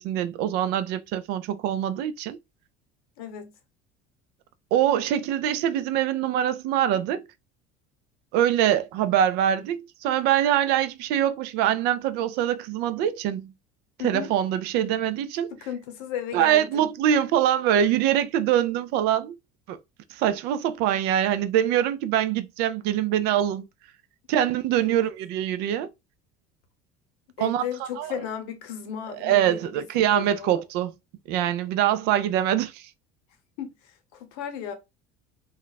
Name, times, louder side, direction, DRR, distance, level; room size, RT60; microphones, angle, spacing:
voice 1, 0.0-2.4 4.7-7.2 8.3-13.5 14.0-15.5 16.3-19.4 19.7-19.8 20.1-23.6 24.3-25.9 27.4-28.2 29.2-30.9 31.3-32.9, right 10 dB, 60° right, 0.4 m, -24 dB
voice 2, 3.2-3.5 14.0-14.3 15.6-16.8 24.8-25.1 27.4-30.6 33.6-34.7, left 9 dB, 85° left, 0.8 m, -35 dB
2.3 x 2.1 x 3.9 m
cardioid pair, 155°, 19 cm